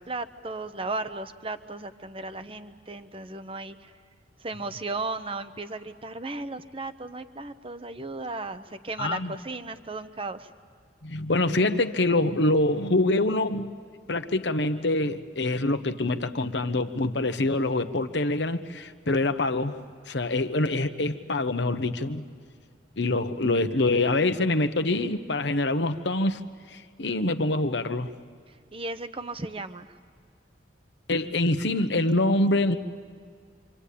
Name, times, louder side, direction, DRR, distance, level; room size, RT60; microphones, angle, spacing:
voice 1, 0.0-3.9 4.4-10.5 28.5-30.0, right 3 dB, 30° right, 11 dB, 1.0 m, -35 dB
voice 2, 9.0-9.3 11.0-13.7 14.1-19.8 20.1-22.2 23.0-26.4 26.7-28.1 31.1-32.8, left 2 dB, 65° left, 9 dB, 1.1 m, -25 dB
27.0 x 25.5 x 8.5 m, 2.1 s
head